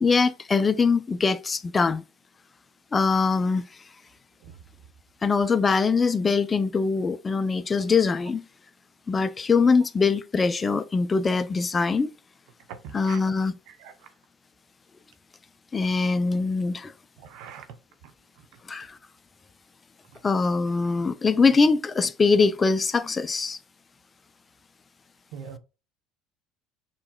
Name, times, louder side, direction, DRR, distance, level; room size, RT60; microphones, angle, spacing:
voice 1, 0.0-2.0 2.9-3.6 5.2-8.4 9.1-12.1 12.9-13.5 15.7-16.9 18.7-19.0 20.2-23.6, left 4 dB, 25° left, 0.4 m, -22 dB
voice 2, 12.7-13.4 13.7-14.1 17.2-17.7 20.1-20.2 25.3-25.6, right 7 dB, 70° right, 0.8 m, -42 dB
5.9 x 3.0 x 2.3 m
supercardioid pair, 85°, 0 cm